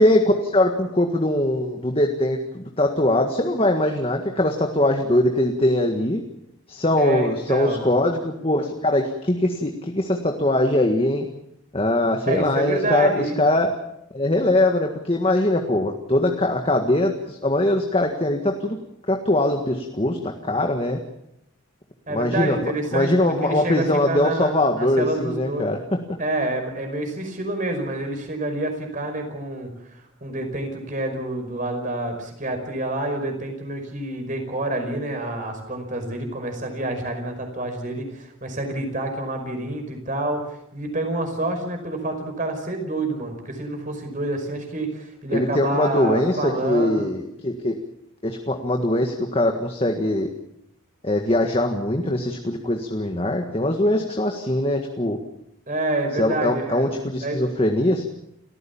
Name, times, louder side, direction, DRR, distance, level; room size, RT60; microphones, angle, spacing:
voice 1, 0.0-6.2 6.7-11.2 11.7-13.7 14.1-18.8 19.1-21.0 22.1-25.8 45.3-47.8 48.2-50.3 51.0-55.2 56.2-58.0, left 1 dB, 30° left, 3 dB, 1.7 m, -22 dB
voice 2, 7.0-7.8 12.2-13.5 22.1-25.7 26.2-47.1 55.7-56.9 57.2-57.5, right 2 dB, 40° right, 5 dB, 5.2 m, -28 dB
30.0 x 15.0 x 7.2 m, 0.79 s
head